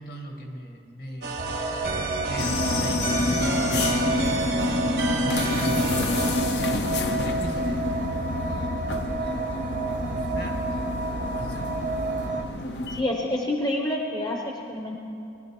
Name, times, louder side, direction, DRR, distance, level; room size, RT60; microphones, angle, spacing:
voice 1, 0.0-4.5 5.0-6.8 7.1-8.1 8.7-9.0 9.3-9.5 10.1-11.8, equal, 55° left, 2 dB, 1.4 m, -40 dB
sound 1, 1.2-6.4, right 3 dB, 75° right, 1.2 m, -31 dB
sound 2, 1.4-12.4, right 2 dB, 45° right, 0.6 m, -30 dB
sound 3, 2.4-13.0, left 2 dB, 75° left, 0.7 m, -28 dB
voice 2, 12.9-15.0, left 1 dB, 25° left, 0 dB, 0.7 m, -28 dB
19.5 x 11.5 x 3.0 m, 2.6 s
head